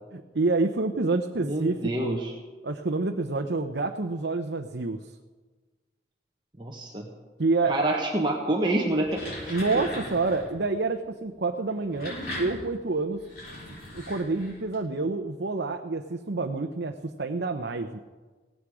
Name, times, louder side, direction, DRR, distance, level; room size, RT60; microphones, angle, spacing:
voice 1, 0.1-2.2 2.6-5.0 7.4-8.0 9.5-13.2 13.9-18.0, right 3 dB, 80° right, 4 dB, 0.8 m, -28 dB
voice 2, 1.4-2.3 6.6-7.1 7.7-9.8, right 1 dB, 25° right, 0 dB, 1.4 m, -27 dB
sound 1, 8.8-10.5 11.7-14.7, left 1 dB, 60° left, 6.8 m, -39 dB
17.5 x 14.5 x 4.9 m, 1.3 s
head